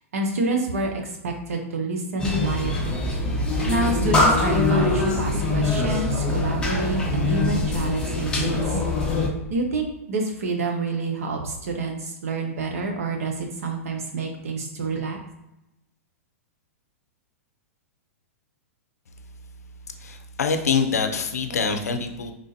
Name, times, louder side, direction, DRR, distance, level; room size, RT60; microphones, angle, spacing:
voice 1, 0.1-3.0 3.7-8.8 9.5-15.2, right 3 dB, 70° right, 2 dB, 0.8 m, -28 dB
sound 1, 2.2-9.3, left 2 dB, 10° left, 0.9 m, -23 dB
voice 2, 19.9-22.3, left 5 dB, 85° left, 6 dB, 0.5 m, -25 dB
3.7 x 2.4 x 2.7 m, 0.90 s
hypercardioid pair, 115°, 8 cm